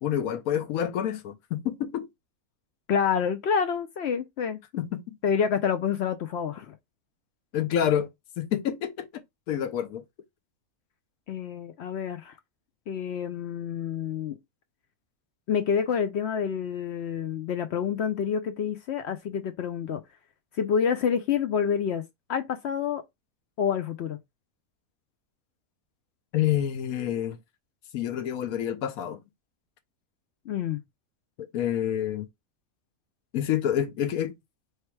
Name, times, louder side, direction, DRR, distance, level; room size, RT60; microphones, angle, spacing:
voice 1, 0.0-2.1 4.8-5.0 7.5-8.1 8.4-9.1 9.5-10.0 26.3-27.4 27.9-29.2 31.5-32.3 33.3-34.3, left 10 dB, 90° left, 1.2 m, -27 dB
voice 2, 2.9-4.6 5.2-6.8 11.3-12.3 12.9-14.4 15.5-20.0 20.6-22.0 22.3-23.0 23.6-24.2 30.5-30.8, left 7 dB, 65° left, 0.7 m, -28 dB
3.2 x 2.9 x 4.5 m
omnidirectional pair, 1.5 m